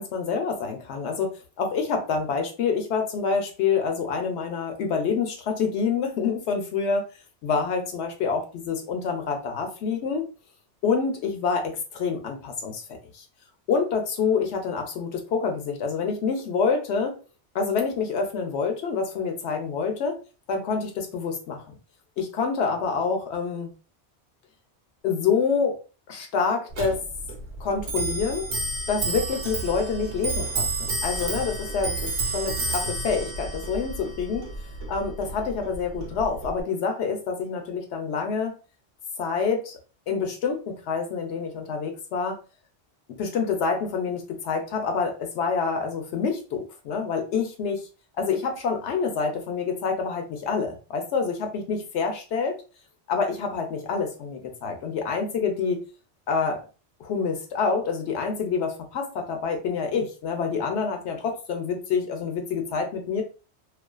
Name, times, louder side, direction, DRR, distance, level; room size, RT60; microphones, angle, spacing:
voice 1, 0.0-1.3 1.6-7.1 7.4-10.2 10.8-12.8 13.1-13.2 13.7-17.2 17.5-20.2 20.5-21.6 22.2-23.7 25.0-25.8 26.1-27.0 27.6-28.5 28.9-34.5 34.9-38.5 39.2-39.8 40.1-42.4 43.2-47.9 48.2-52.6 53.1-55.8 56.3-56.6 57.0-63.2, left 5 dB, 85° left, 4 dB, 0.9 m, -27 dB
Clock, 26.7-36.6, right 3 dB, 85° right, 1.0 m, -31 dB
2.4 x 2.3 x 2.3 m, 0.35 s
omnidirectional pair, 1.1 m